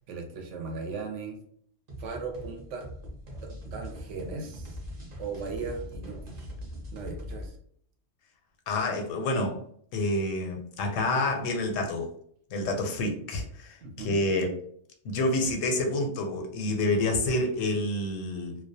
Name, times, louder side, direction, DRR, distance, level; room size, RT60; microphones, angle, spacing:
voice 1, 0.1-1.4 2.0-2.9 3.3-4.8 5.2-6.5 6.9-7.6 13.8-14.2, right 4 dB, 75° right, 3 dB, 0.9 m, -37 dB
sound 1, 1.9-7.5, equal, 45° right, 0.6 m, -41 dB
voice 2, 8.7-9.6 9.9-12.1 12.5-14.5 15.0-18.6, left 2 dB, 85° left, 4 dB, 0.9 m, -28 dB
2.3 x 2.1 x 2.6 m, 0.64 s
omnidirectional pair, 1.3 m